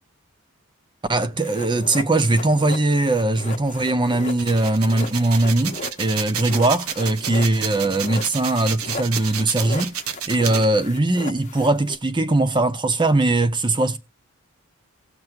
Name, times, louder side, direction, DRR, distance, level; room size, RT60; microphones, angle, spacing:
voice 1, 1.1-9.9 10.3-14.0, right 2 dB, 20° right, 0.7 m, -20 dB
sound 1, 1.4-12.0, left 3 dB, 35° left, 0.9 m, -36 dB
sound 2, 4.3-10.7, right 8 dB, 80° right, 0.8 m, -30 dB
18.0 x 6.2 x 2.4 m
head